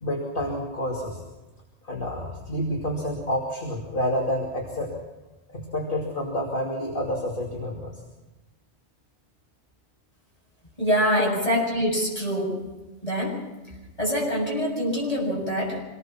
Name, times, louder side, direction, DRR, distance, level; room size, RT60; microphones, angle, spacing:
voice 1, 0.0-1.2 1.8-5.0 5.5-8.0 11.2-11.3, equal, 50° left, -1 dB, 2.9 m, -29 dB
voice 2, 10.8-12.6 13.0-13.4 14.0-15.8, equal, 30° left, -3 dB, 7.4 m, -25 dB
25.5 x 19.0 x 6.0 m, 1.1 s
omnidirectional pair, 1.2 m